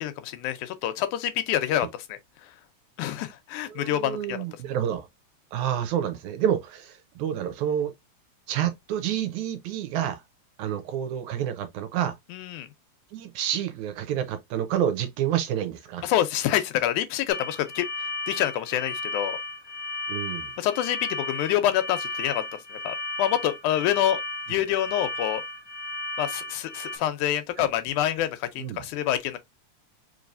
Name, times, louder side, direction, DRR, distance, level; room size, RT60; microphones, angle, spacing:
voice 1, 0.0-2.5 3.0-4.4 12.3-12.7 16.0-17.9 18.3-19.4 20.6-22.4 22.7-24.2 24.5-25.4 26.2-29.4, left 12 dB, 80° left, 2.1 m, -27 dB
voice 2, 3.7-5.1 5.5-7.9 8.5-10.2 10.6-12.2 13.1-16.0 20.1-20.5 27.6-27.7 28.6-28.9, right 10 dB, 80° right, 2.0 m, -29 dB
sound 1, 17.3-27.0, left 2 dB, 35° left, 0.3 m, -34 dB
4.6 x 3.1 x 2.5 m
omnidirectional pair, 3.6 m